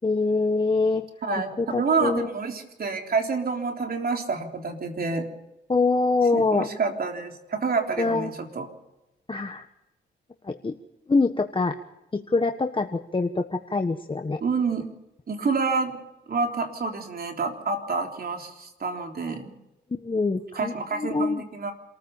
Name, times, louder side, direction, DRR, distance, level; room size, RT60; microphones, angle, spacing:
voice 1, 0.0-1.0 1.6-2.3 5.7-6.7 8.0-8.3 9.3-9.6 10.4-10.7 11.1-11.7 12.1-14.4 20.0-21.4, left 3 dB, 25° left, 6 dB, 1.3 m, -24 dB
voice 2, 1.2-5.3 6.3-8.7 14.4-14.9 15.3-16.0 16.3-19.5 20.6-21.7, right 4 dB, 50° right, 4 dB, 3.6 m, -28 dB
27.0 x 14.5 x 7.2 m, 0.95 s
cardioid pair, 75°, 19 cm